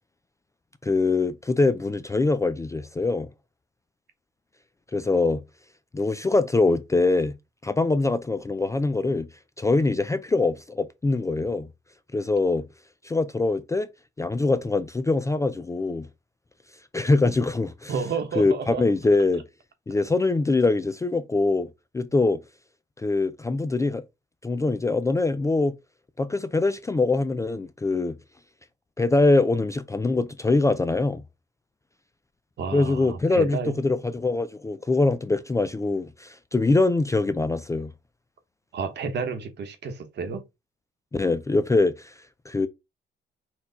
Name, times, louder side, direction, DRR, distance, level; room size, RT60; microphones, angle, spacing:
voice 1, 0.8-3.3 4.9-5.4 5.9-7.4 7.6-9.3 9.6-11.7 12.1-12.6 13.0-13.9 14.2-16.1 16.9-17.9 18.3-19.4 19.9-21.7 21.9-22.4 23.0-24.0 24.4-25.8 26.2-28.2 29.0-31.2 32.7-37.9 41.1-42.1 42.5-42.7, left 3 dB, 15° left, 0.3 m, -23 dB
voice 2, 17.9-18.9 32.6-33.8 38.7-40.4, right 5 dB, 60° right, 1.0 m, -31 dB
4.2 x 2.3 x 4.0 m
cardioid pair, 90°, 20 cm